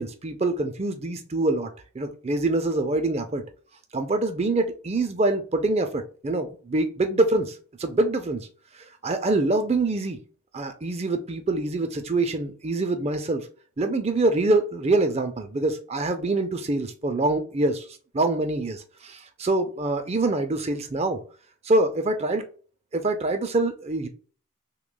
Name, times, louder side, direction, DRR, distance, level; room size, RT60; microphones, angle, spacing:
voice 1, 0.0-3.4 3.9-8.5 9.0-10.2 10.5-13.5 13.8-17.9 18.1-21.2 21.6-22.5 22.9-24.1, right 2 dB, 30° right, 0.4 m, -25 dB
6.0 x 2.2 x 2.2 m
head